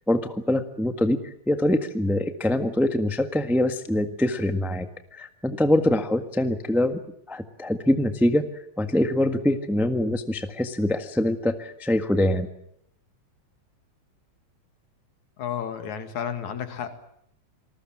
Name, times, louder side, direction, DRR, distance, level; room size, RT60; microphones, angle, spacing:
voice 1, 0.1-4.9 5.1-7.0 7.3-8.5 8.8-12.5, left 1 dB, ahead, 8 dB, 0.5 m, -24 dB
voice 2, 15.4-16.9, left 8 dB, 75° left, 8 dB, 3.5 m, -31 dB
27.0 x 20.0 x 7.5 m, 0.73 s
omnidirectional pair, 3.4 m